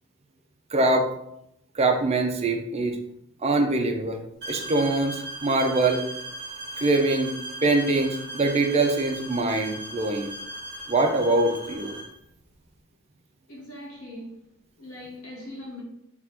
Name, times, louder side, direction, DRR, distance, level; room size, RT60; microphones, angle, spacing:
voice 1, 0.7-1.1 1.8-3.0 3.4-4.2 4.5-6.0 6.8-7.3 7.6-10.3 10.9-11.9, right 2 dB, 30° right, 0.5 m, -23 dB
sound 1, 4.4-12.2, right 2 dB, 50° right, 1.1 m, -38 dB
voice 2, 13.5-14.4 14.8-15.8, left 1 dB, 90° left, 1.4 m, -40 dB
3.6 x 2.5 x 4.3 m
head